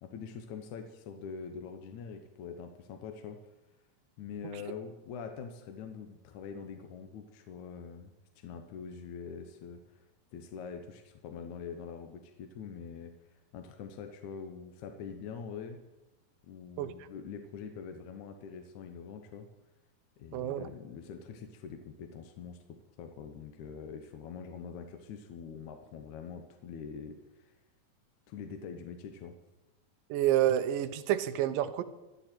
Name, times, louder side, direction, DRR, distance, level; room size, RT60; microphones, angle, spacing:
voice 1, 0.0-3.4 4.2-10.0 10.3-15.8 16.5-19.5 20.2-22.6 23.0-27.5 28.3-29.3, left 6 dB, 70° left, 6 dB, 2.0 m, -44 dB
voice 2, 20.3-20.6 30.1-31.8, right 12 dB, 75° right, 10 dB, 2.3 m, -28 dB
26.0 x 9.7 x 4.4 m, 1.0 s
omnidirectional pair, 4.2 m